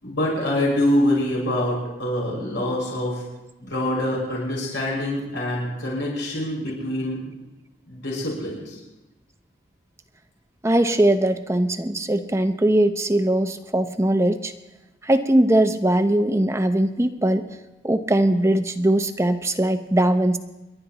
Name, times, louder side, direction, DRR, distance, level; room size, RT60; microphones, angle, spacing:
voice 1, 0.0-3.2 3.6-7.3 7.9-8.8, left 1 dB, 90° left, -4 dB, 5.5 m, -25 dB
voice 2, 10.6-14.5 15.0-17.4 17.8-20.4, right 1 dB, 15° right, 8 dB, 0.6 m, -20 dB
29.0 x 11.5 x 3.0 m, 1.0 s
head